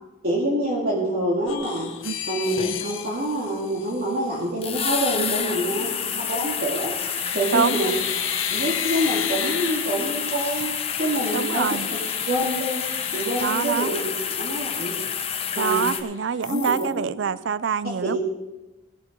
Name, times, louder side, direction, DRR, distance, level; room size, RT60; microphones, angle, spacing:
voice 1, 0.2-1.9 2.3-6.9 7.3-7.9 8.5-11.7 12.3-12.8 13.1-14.9 15.5-16.0 16.5-17.1 18.0-18.2, right 1 dB, 50° right, 2.4 m, -26 dB
sound 1, 1.5-4.5 6.3-6.7 7.0-14.3 14.7-14.8 15.1-16.0 16.4-16.9, left 9 dB, 85° left, 1.0 m, -34 dB
sound 2, 1.5-1.6 2.4-3.1 4.6-16.0, left 7 dB, 30° left, 0.9 m, -29 dB
voice 2, 7.5-7.9 11.3-11.9 13.4-14.0 15.6-18.2, right 6 dB, 70° right, 0.4 m, -25 dB
17.5 x 7.1 x 5.3 m
head